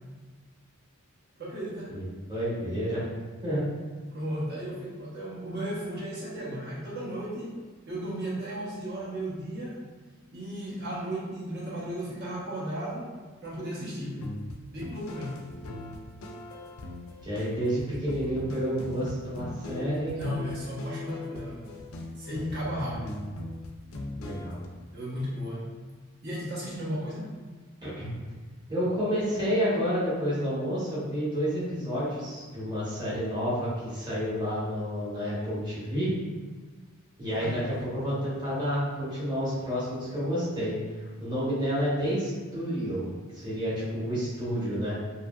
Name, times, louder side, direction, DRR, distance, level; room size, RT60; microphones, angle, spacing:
voice 1, 1.4-2.0 4.1-9.8 10.3-13.1 13.4-14.4 14.7-15.5 20.1-21.7 22.2-23.1 24.9-25.7 26.2-27.4 37.3-37.7, equal, 50° right, -6 dB, 0.8 m, -35 dB
voice 2, 2.3-3.1 3.4-3.6 17.2-20.4 24.2-24.6 27.8-28.1 28.7-36.1 37.2-37.6 37.9-40.8 41.2-45.0, equal, 20° right, -10 dB, 1.0 m, -30 dB
sound 1, 14.1-24.7, left 2 dB, 75° left, 0.4 m, -40 dB
2.8 x 2.6 x 2.2 m, 1.4 s
head